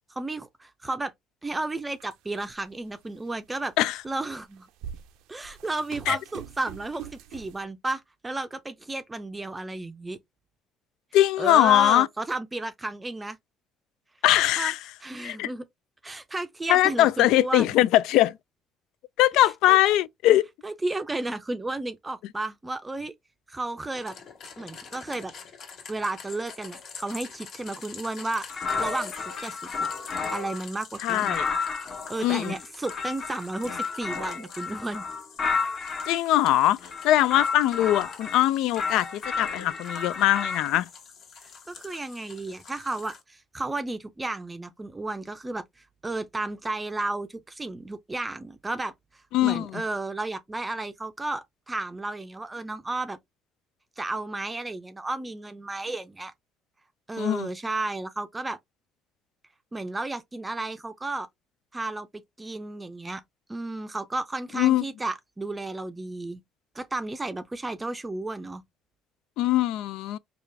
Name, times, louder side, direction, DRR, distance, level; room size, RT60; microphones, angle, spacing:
voice 1, 0.1-1.1 1.4-3.7 4.0-4.7 5.3-10.2 11.4-13.4 14.6-14.7 15.0-15.7 16.0-17.8 19.3-19.8 20.6-23.1 23.5-24.1 24.6-25.3 25.9-28.5 28.7-29.1 29.4-29.9 30.3-31.4 32.1-35.1 41.4-45.6 46.0-48.9 49.4-53.2 54.0-56.3 57.1-58.6 59.7-61.3 61.7-62.1 62.4-63.2 63.5-66.4 66.7-68.6, right 2 dB, 15° right, 0.5 m, -33 dB
sound 1, 1.5-1.6 2.0-2.5 3.2-3.3 4.3-7.6, right 9 dB, 90° right, 0.6 m, -43 dB
voice 2, 11.1-12.1 14.2-14.8 15.2-15.5 16.7-18.4 19.2-20.5 31.0-31.5 32.2-32.5 36.1-36.8 37.0-40.9 49.3-49.8 57.2-57.5 64.6-64.8 69.4-70.2, left 14 dB, 80° left, 0.3 m, -21 dB
sound 2, 23.9-43.2, left 6 dB, 55° left, 1.3 m, -46 dB
sound 3, 28.5-30.6 31.1-36.2 36.8-38.4 38.8-40.7, left 5 dB, 35° left, 0.8 m, -32 dB
4.7 x 2.4 x 3.3 m
cardioid pair, 135°, 0 cm